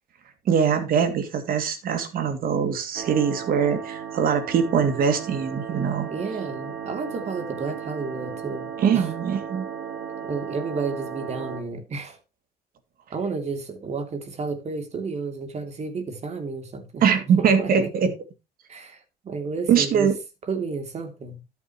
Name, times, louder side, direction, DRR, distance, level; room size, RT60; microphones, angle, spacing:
voice 1, 0.5-6.1 8.8-9.7 17.0-18.1 19.7-20.2, right 7 dB, 60° right, 2.5 m, -22 dB
sound 1, 2.9-11.6, right 7 dB, 75° right, 2.3 m, -35 dB
voice 2, 6.1-9.1 10.2-12.2 13.1-17.1 17.4-17.9 18.7-20.1 20.5-21.4, right 4 dB, 40° right, 2.9 m, -31 dB
13.0 x 8.4 x 3.1 m
cardioid pair, 110°, 17 cm